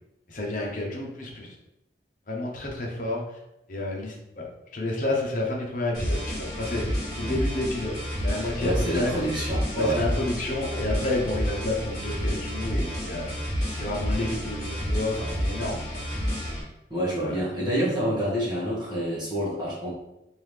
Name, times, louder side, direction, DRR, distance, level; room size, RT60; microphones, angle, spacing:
voice 1, 0.3-1.5 2.3-3.4 3.7-4.4 4.7-7.9 8.2-9.1 9.7-13.3 13.7-16.0 17.2-17.4, left 2 dB, 50° left, -1 dB, 0.8 m, -30 dB
sound 1, 5.9-16.6, equal, 25° left, 1.4 m, -30 dB
voice 2, 8.6-10.0 16.9-19.9, right 1 dB, 25° right, -6 dB, 1.3 m, -27 dB
3.8 x 2.6 x 3.2 m, 0.90 s
head